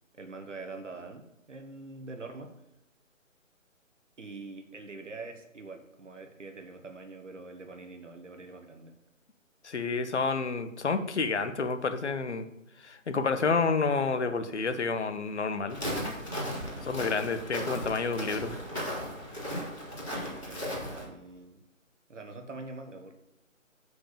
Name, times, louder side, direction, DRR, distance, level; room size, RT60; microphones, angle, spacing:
voice 1, 0.1-2.5 4.2-8.9 16.8-16.9 19.4-19.7 20.2-21.6 22.1-23.1, right 3 dB, 65° right, 5 dB, 1.5 m, -44 dB
voice 2, 9.6-12.5 12.8-15.8 16.8-18.5, left 4 dB, 55° left, 9 dB, 1.1 m, -29 dB
Walk footsteps, 15.7-21.0, equal, ahead, 0.7 m, -36 dB
7.8 x 5.0 x 7.0 m, 0.89 s
figure-of-eight pair, 155°, 40 cm